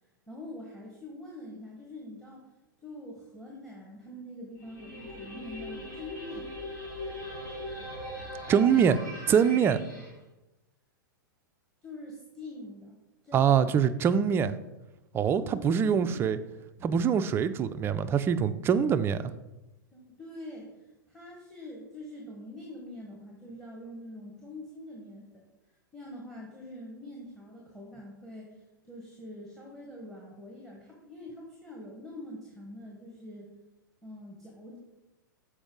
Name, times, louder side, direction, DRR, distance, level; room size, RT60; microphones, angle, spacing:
voice 1, 0.3-2.5 2.8-6.5 9.9-10.0 11.8-13.0 13.2-13.7 15.3-16.4 19.9-20.8 21.1-25.5 25.9-28.6 28.8-33.5 34.0-34.8, left 1 dB, 5° left, 1.2 m, -44 dB
sound 1, 4.6-10.1, left 1 dB, 70° left, 2.0 m, -40 dB
voice 2, 8.5-9.0 9.3-9.8 13.3-14.6 15.1-16.4 16.8-19.3, right 7 dB, 20° right, 0.3 m, -24 dB
6.9 x 4.6 x 3.7 m
figure-of-eight pair, 100°, 11 cm